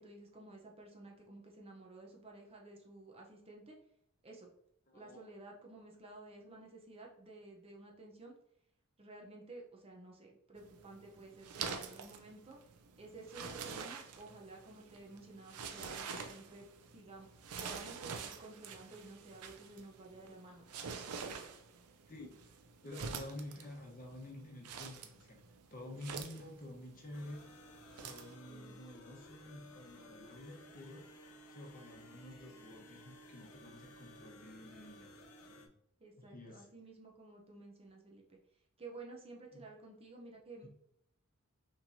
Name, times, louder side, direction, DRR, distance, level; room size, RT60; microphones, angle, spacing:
voice 1, 0.0-3.8 4.2-4.5 4.9-8.3 9.0-12.6 13.0-16.7 16.9-17.3 17.6-20.7 21.1-21.4 25.8-26.2 28.5-28.7 36.0-38.4 38.8-40.7, right 2 dB, 25° right, 0 dB, 0.7 m, -53 dB
voice 2, 4.9-5.3 20.4-20.6 22.1-22.3 22.8-25.4 25.7-27.5 28.0-31.1 31.5-35.1 35.5-35.7 36.2-36.7 39.5-39.6 40.6-40.7, left 1 dB, 40° left, 0 dB, 0.9 m, -50 dB
sound 1, 10.6-28.3, right 6 dB, 85° right, 0.5 m, -47 dB
sound 2, 27.1-35.7, equal, 75° left, 0.7 m, -56 dB
5.8 x 3.2 x 2.7 m, 0.73 s
head